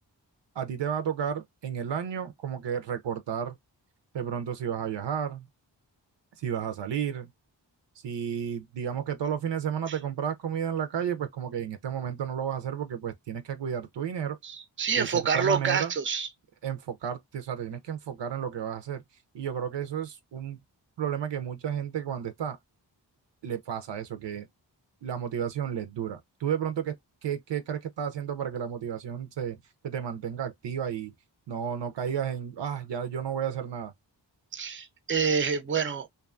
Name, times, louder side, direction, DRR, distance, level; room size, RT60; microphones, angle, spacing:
voice 1, 0.6-3.6 4.1-5.5 6.4-7.3 8.0-14.4 15.0-15.9 16.6-19.0 19.3-20.6 21.0-22.6 23.4-24.5 25.0-27.0 27.2-29.6 29.8-31.1 31.5-33.9, right 8 dB, 70° right, 0.6 m, -32 dB
voice 2, 14.4-16.3 34.5-36.1, right 6 dB, 25° right, 0.5 m, -27 dB
2.6 x 2.3 x 2.4 m
cardioid pair, 45°, 44 cm